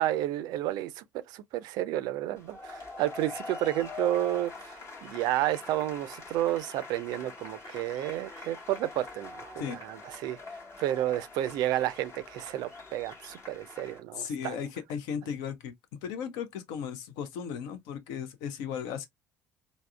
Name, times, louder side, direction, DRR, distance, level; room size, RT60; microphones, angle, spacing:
voice 1, 0.0-14.6, right 13 dB, 60° right, 0.4 m, -31 dB
sound 1, 2.4-14.0, left 3 dB, 40° left, 1.0 m, -45 dB
voice 2, 14.2-15.7 16.0-19.1, left 7 dB, 70° left, 0.5 m, -36 dB
3.4 x 2.0 x 2.2 m
hypercardioid pair, 55°, 7 cm